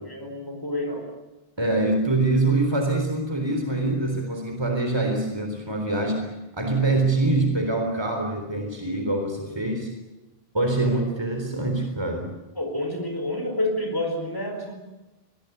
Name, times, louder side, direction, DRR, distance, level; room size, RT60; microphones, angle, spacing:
voice 1, 0.0-1.0 12.6-14.7, left 1 dB, 20° left, 3 dB, 4.9 m, -28 dB
voice 2, 1.6-9.9 10.5-12.3, right 2 dB, 25° right, 4 dB, 3.9 m, -24 dB
24.5 x 21.0 x 8.1 m, 1.0 s
omnidirectional pair, 1.0 m